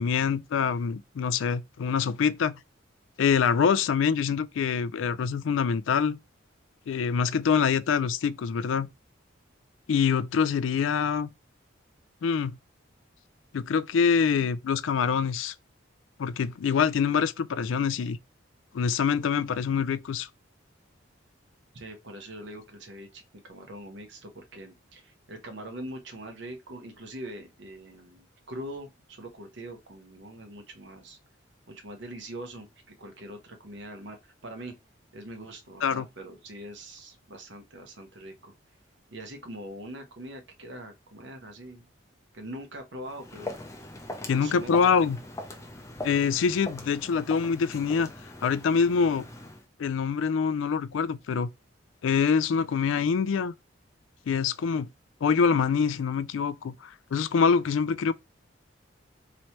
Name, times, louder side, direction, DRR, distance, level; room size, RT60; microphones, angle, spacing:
voice 1, 0.0-2.6 3.2-6.2 6.9-8.9 9.9-11.3 12.2-12.6 13.5-15.5 16.2-18.2 18.7-20.3 35.8-36.1 44.3-45.2 46.0-48.1 48.4-49.2 49.8-51.5 52.0-53.5 54.3-54.9 55.2-58.1, left 6 dB, 80° left, 0.4 m, -25 dB
voice 2, 21.7-31.2 31.7-34.7 35.1-38.5 39.1-41.9 42.3-43.6 44.3-44.7, right 1 dB, 65° right, 1.0 m, -42 dB
Walk footsteps, 43.0-49.6, left 2 dB, 15° left, 0.6 m, -41 dB
3.1 x 2.8 x 4.4 m
head